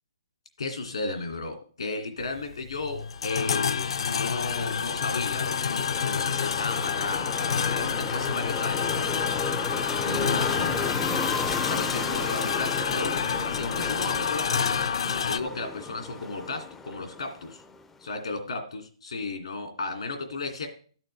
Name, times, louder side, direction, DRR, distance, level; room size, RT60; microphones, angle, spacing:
voice 1, 0.6-10.8 11.6-14.9 15.2-17.6 18.0-20.7, left 3 dB, 80° left, 4 dB, 2.4 m, -34 dB
sound 1, 2.2-15.4, left 7 dB, 65° left, 0.5 m, -28 dB
sound 2, 3.7-17.9, left 4 dB, 5° left, 0.4 m, -35 dB
13.0 x 8.9 x 3.3 m, 0.44 s
hypercardioid pair, 165°, 3 cm